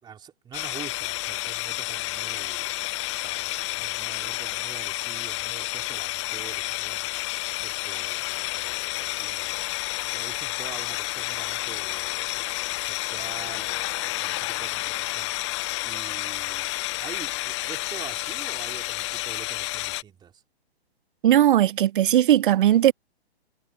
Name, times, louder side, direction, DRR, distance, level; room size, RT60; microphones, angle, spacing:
voice 1, 0.0-2.8 3.2-15.5 15.8-16.7 16.9-20.4, right 8 dB, 15° right, 3.3 m, -45 dB
sound 1, 0.5-20.0, left 19 dB, 25° left, 0.7 m, -30 dB
voice 2, 21.2-22.9, right 12 dB, 50° right, 0.7 m, -18 dB
hypercardioid pair, 145°, 32 cm